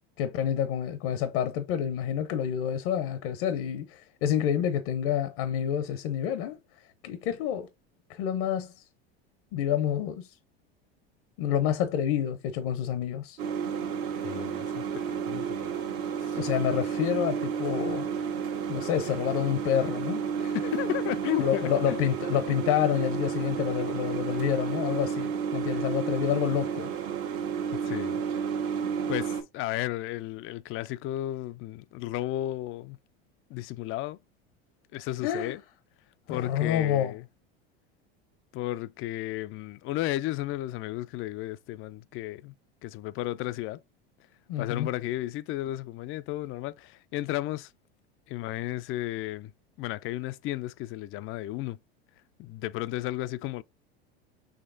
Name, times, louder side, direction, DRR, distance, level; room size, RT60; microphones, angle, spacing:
voice 1, 0.2-6.6 7.0-7.7 8.1-8.8 9.5-10.3 11.4-13.4 16.4-18.0 18.7-20.2 21.4-26.9 35.2-35.6 36.3-37.2 44.5-44.9, left 9 dB, 65° left, 0.8 m, -28 dB
sound 1, 13.4-29.4, right 7 dB, 70° right, 1.4 m, -31 dB
voice 2, 14.2-15.6 16.2-16.4 20.4-22.0 27.7-28.2 29.1-33.0 33.5-34.2 34.9-35.6 36.3-37.2 38.5-42.5 42.8-43.8 44.6-47.7 48.3-49.5 49.8-51.8 52.4-53.6, left 15 dB, 45° left, 0.4 m, -33 dB
6.4 x 3.0 x 2.5 m
hypercardioid pair, 90°, 30 cm